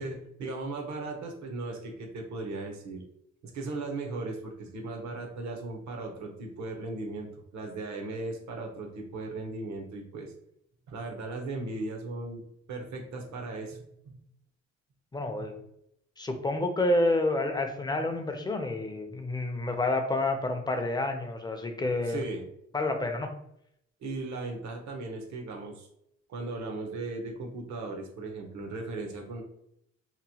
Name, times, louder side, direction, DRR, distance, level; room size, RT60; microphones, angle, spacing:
voice 1, 0.0-3.1 3.4-10.3 10.9-12.4 12.7-14.2 15.4-15.5 22.0-22.5 24.0-25.9 26.3-29.4, right 3 dB, 70° right, 3 dB, 0.7 m, -37 dB
voice 2, 15.1-15.6 16.2-22.2 22.7-23.3, left 2 dB, 15° left, 5 dB, 0.4 m, -29 dB
3.0 x 2.0 x 2.7 m, 0.76 s
cardioid pair, 90°, 30 cm